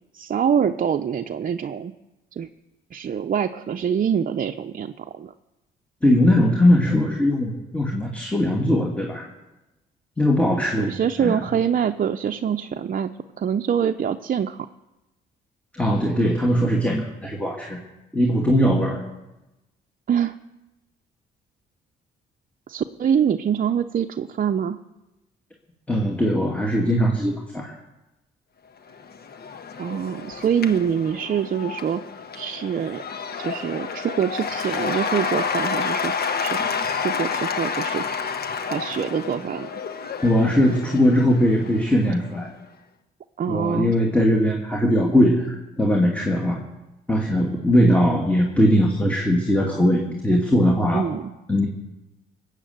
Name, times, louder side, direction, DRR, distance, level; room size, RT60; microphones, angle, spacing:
voice 1, 0.1-1.9 2.3-2.5 2.9-5.3 10.8-13.1 13.4-14.6 20.1-20.4 22.7-24.8 29.8-32.0 32.3-33.0 33.4-36.1 36.4-36.7 37.0-38.0 38.7-39.8 43.4-43.9 50.9-51.3, right 8 dB, 45° right, 6 dB, 0.7 m, -25 dB
voice 2, 6.0-9.3 10.2-10.9 11.2-11.4 15.7-17.8 18.1-19.0 25.9-27.7 40.2-42.5 43.5-46.6 47.1-51.1 51.5-51.7, equal, 5° left, 0 dB, 2.3 m, -20 dB
Cheering / Applause / Crowd, 28.9-42.3, left 5 dB, 50° left, 1.4 m, -29 dB
20.0 x 8.2 x 7.9 m, 1.0 s
cardioid pair, 90°, 20 cm